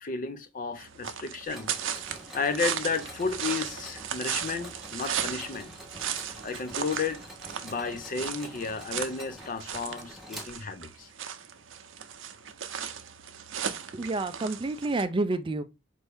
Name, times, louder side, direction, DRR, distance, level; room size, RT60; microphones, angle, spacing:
voice 1, 0.0-1.7 2.3-5.7 6.4-7.2 7.6-11.1, left 4 dB, 45° left, 0.5 m, -32 dB
sound 1, 0.8-15.0, right 8 dB, 85° right, 0.6 m, -36 dB
Mechanisms, 1.5-11.0, equal, ahead, 0.9 m, -47 dB
voice 2, 13.9-15.6, right 2 dB, 25° right, 0.4 m, -29 dB
4.4 x 2.7 x 3.4 m
head